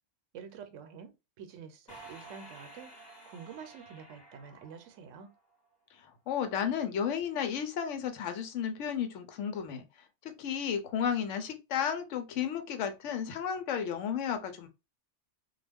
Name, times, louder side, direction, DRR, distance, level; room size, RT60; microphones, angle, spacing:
voice 1, 0.3-1.1 1.4-5.3, right 7 dB, 80° right, 0.9 m, -48 dB
sound 1, 1.9-5.5, right 2 dB, 20° left, 1.0 m, -52 dB
voice 2, 6.3-9.8 10.2-14.7, left 8 dB, 85° left, 0.9 m, -33 dB
2.4 x 2.1 x 3.3 m
omnidirectional pair, 1.3 m